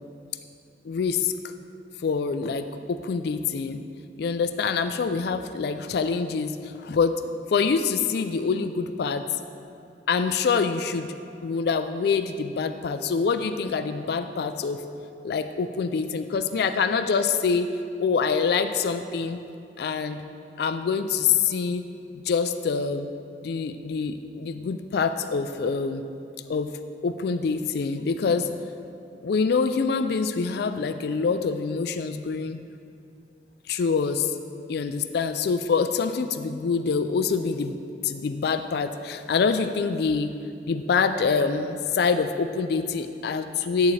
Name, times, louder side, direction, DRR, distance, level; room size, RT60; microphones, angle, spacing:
voice 1, 0.8-1.5 2.0-3.8 4.2-7.1 7.5-9.3 10.1-11.1 11.4-14.8 15.2-17.7 18.0-19.4 19.8-20.2 20.6-21.8 22.1-23.1 23.4-26.0 26.5-26.7 27.0-28.5 29.2-32.6 33.7-34.3 34.7-37.8 38.0-40.3 40.6-43.9, left 5 dB, 60° left, 9 dB, 0.3 m, -25 dB
11.0 x 8.2 x 3.2 m, 2.5 s
head